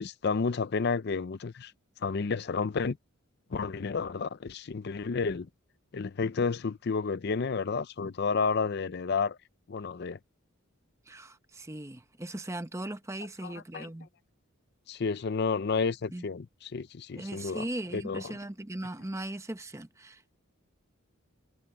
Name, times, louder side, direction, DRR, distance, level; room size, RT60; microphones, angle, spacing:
voice 1, 0.0-1.7 2.0-3.0 3.5-5.5 5.9-9.4 9.7-10.2 13.4-13.9 14.9-17.6 17.9-18.4, left 5 dB, 50° left, 0.5 m, -31 dB
voice 2, 11.1-14.1 16.1-16.3 17.1-20.3, right 1 dB, 15° right, 0.8 m, -39 dB
head